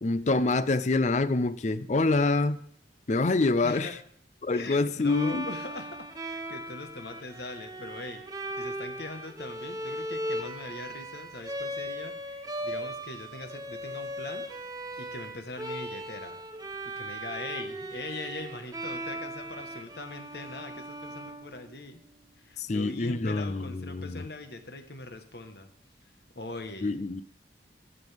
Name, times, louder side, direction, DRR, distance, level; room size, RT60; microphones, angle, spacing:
voice 1, 0.0-2.6 3.1-3.9 4.4-5.5 22.6-24.2 26.8-27.2, left 3 dB, 40° left, 15 dB, 0.5 m, -26 dB
voice 2, 3.6-4.0 4.5-14.4 15.0-16.4 17.0-22.0 22.4-25.7 26.3-27.0, left 2 dB, 60° left, 6 dB, 1.3 m, -41 dB
Bowed string instrument, 5.0-22.0, right 1 dB, 20° right, 0.8 m, -38 dB
15.5 x 7.9 x 3.5 m, 0.65 s
head